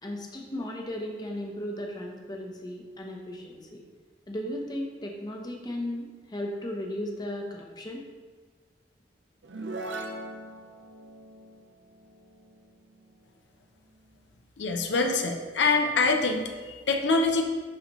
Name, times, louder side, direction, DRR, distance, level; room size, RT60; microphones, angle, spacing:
voice 1, 0.0-3.8 4.3-8.0, left 1 dB, 25° left, 0 dB, 0.8 m, -36 dB
sound 1, 9.4-13.0, right 2 dB, 80° right, 0.7 m, -40 dB
voice 2, 14.6-17.4, left 3 dB, 80° left, 3 dB, 0.7 m, -25 dB
10.5 x 4.0 x 3.1 m, 1.5 s
head